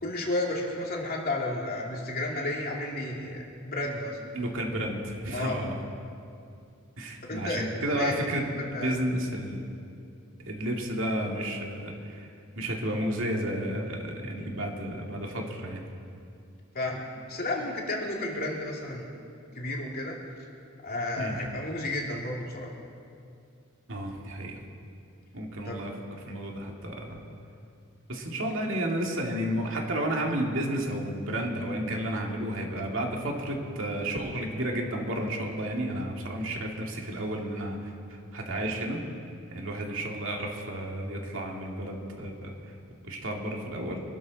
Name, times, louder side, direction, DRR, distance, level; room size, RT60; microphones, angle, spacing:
voice 1, 0.0-4.2 5.3-5.6 7.3-7.6 7.9-8.1 8.6-9.0 16.7-19.1 19.5-20.2 20.8-22.7 25.6-25.8, left 2 dB, 45° left, -1 dB, 2.5 m, -32 dB
voice 2, 4.3-5.7 7.0-9.6 10.4-12.3 12.6-15.8 21.2-21.3 23.9-24.6 25.3-25.9 26.3-27.2 28.1-37.9 38.3-39.0 39.5-42.5 43.0-44.0, right 1 dB, 65° right, 0 dB, 2.4 m, -32 dB
25.0 x 13.0 x 4.1 m, 2.4 s
head